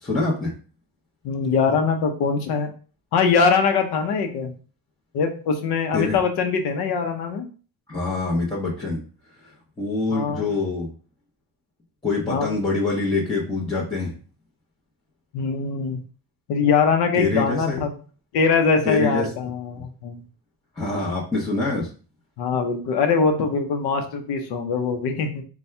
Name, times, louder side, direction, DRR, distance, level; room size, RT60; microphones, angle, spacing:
voice 1, 0.0-0.5 5.9-6.2 7.9-9.0 9.8-10.9 12.0-14.1 17.1-17.8 18.8-19.3 20.8-21.9, left 3 dB, 10° left, -7 dB, 0.8 m, -25 dB
voice 2, 1.2-2.7 3.1-4.5 5.1-7.5 10.1-10.5 12.2-12.6 15.3-16.0 16.5-17.9 18.3-20.2 22.4-25.4, left 5 dB, 90° left, 5 dB, 0.8 m, -22 dB
4.3 x 2.3 x 3.3 m, 0.38 s
cardioid pair, 145°, 38 cm